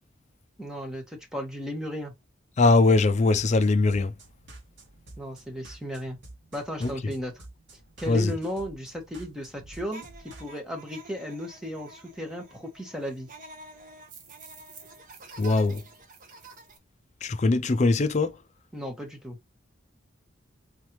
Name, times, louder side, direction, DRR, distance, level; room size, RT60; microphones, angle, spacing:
voice 1, 0.6-2.1 5.2-6.2 6.5-7.3 8.0-13.3 18.7-19.4, equal, 5° right, 1.2 m, -35 dB
voice 2, 2.6-4.1 6.8-6.9 8.1-8.3 15.4-15.8 17.2-18.4, left 3 dB, 35° left, 0.4 m, -21 dB
sound 1, 3.4-10.5, right 2 dB, 70° right, 1.6 m, -49 dB
sound 2, 9.9-16.8, right 2 dB, 45° right, 1.0 m, -48 dB
4.0 x 3.3 x 2.9 m
head